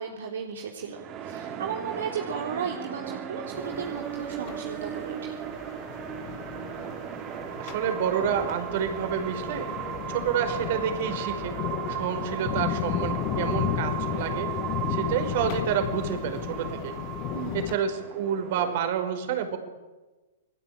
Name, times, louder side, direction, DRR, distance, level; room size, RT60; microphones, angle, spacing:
voice 1, 0.0-5.3 17.3-17.7, right 6 dB, 70° right, 1 dB, 3.5 m, -35 dB
sound 1, 0.9-18.8, right 9 dB, 35° right, 4.1 m, -36 dB
sound 2, 3.5-17.8, left 13 dB, 40° left, 1.9 m, -34 dB
voice 2, 7.6-9.7 10.1-11.6 11.9-14.5 14.9-16.9 17.5-19.6, right 8 dB, 55° right, 8 dB, 5.3 m, -29 dB
28.5 x 20.5 x 9.0 m, 1.2 s
hypercardioid pair, 120°, 0 cm